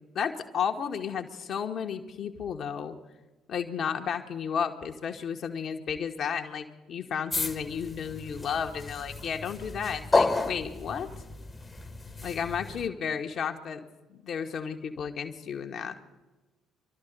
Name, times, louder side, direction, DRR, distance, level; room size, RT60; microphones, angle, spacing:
voice 1, 0.1-3.0 3.5-11.1 12.2-13.8 14.1-15.9, left 7 dB, 50° left, 5 dB, 1.4 m, -33 dB
sound 1, 7.3-12.9, left 3 dB, 20° left, 1.2 m, -31 dB
26.0 x 12.5 x 4.0 m, 1.2 s
figure-of-eight pair, 50°, 0 cm